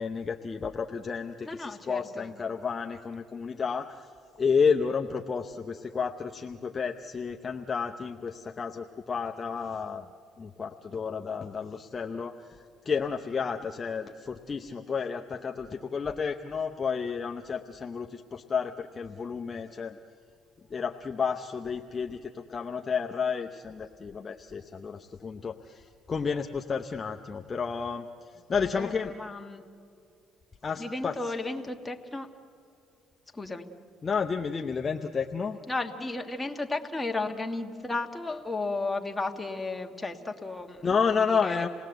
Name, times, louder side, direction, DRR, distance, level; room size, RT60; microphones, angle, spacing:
voice 1, 0.0-4.1 4.4-10.0 10.4-20.0 20.7-29.1 30.6-31.3 34.0-35.6 40.8-41.7, left 5 dB, 30° left, 3 dB, 0.8 m, -31 dB
voice 2, 1.4-2.4 28.6-29.6 30.8-32.3 33.3-33.7 35.7-41.7, left 3 dB, 15° left, 4 dB, 1.4 m, -34 dB
28.0 x 18.5 x 8.0 m, 2.4 s
cardioid pair, 100°, 0 cm